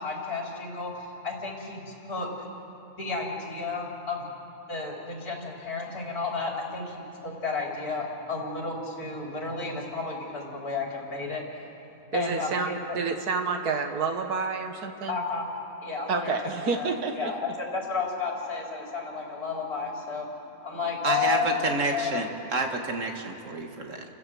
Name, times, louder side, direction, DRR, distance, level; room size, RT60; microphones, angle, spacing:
voice 1, 0.0-2.3 2.9-4.3 4.7-11.6 12.0-13.0 15.1-15.5 15.8-20.3 20.6-21.6 21.9-22.2, left 4 dB, 75° left, -2 dB, 4.4 m, -32 dB
voice 2, 12.1-15.2 16.1-17.3, right 4 dB, 90° right, 5 dB, 1.9 m, -29 dB
voice 3, 21.0-24.0, right 2 dB, 55° right, 3 dB, 2.2 m, -29 dB
29.5 x 15.5 x 7.8 m, 2.8 s
omnidirectional pair, 1.6 m